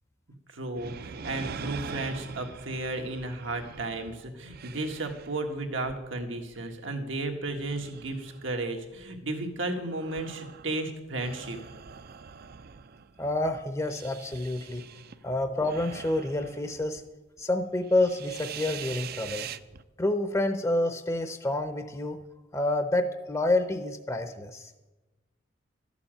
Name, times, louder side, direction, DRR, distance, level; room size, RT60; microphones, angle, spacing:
voice 1, 0.5-11.6, right 2 dB, 90° right, 4 dB, 1.7 m, -34 dB
sound 1, 0.8-7.0 7.4-9.2 9.8-17.1 17.4-17.5 17.8-19.8, right 6 dB, 55° right, 0.5 m, -43 dB
voice 2, 13.2-14.8 15.2-17.0 17.4-19.5 20.0-22.2 22.5-24.7, left 2 dB, 15° left, 8 dB, 0.6 m, -28 dB
13.0 x 7.1 x 8.8 m, 1.1 s
head